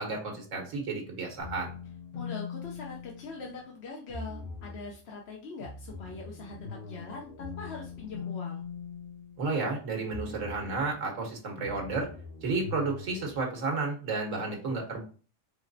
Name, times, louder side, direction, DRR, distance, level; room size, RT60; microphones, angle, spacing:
voice 1, 0.0-1.7 9.4-12.1 12.4-15.0, right 3 dB, 85° right, 1 dB, 1.6 m, -32 dB
sound 1, 1.4-3.6 4.1-4.9 5.6-9.7 10.1-10.9 11.6-13.4, left 5 dB, 85° left, 1.9 m, -41 dB
voice 2, 2.1-8.6, left 4 dB, 60° left, -1 dB, 0.9 m, -42 dB
5.0 x 3.1 x 2.6 m, 0.37 s
omnidirectional pair, 1.3 m